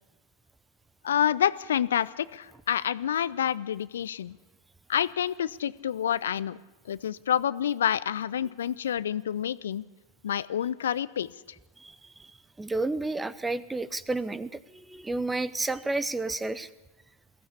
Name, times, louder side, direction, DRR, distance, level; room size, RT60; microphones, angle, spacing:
voice 1, 1.0-4.4 4.9-6.6 6.9-9.8 10.2-11.3, left 9 dB, 65° left, 17 dB, 0.6 m, -28 dB
voice 2, 11.8-12.3 12.6-16.7, right 2 dB, 10° right, 17 dB, 0.8 m, -31 dB
22.0 x 15.0 x 8.5 m, 1.1 s
figure-of-eight pair, 90°, 0 cm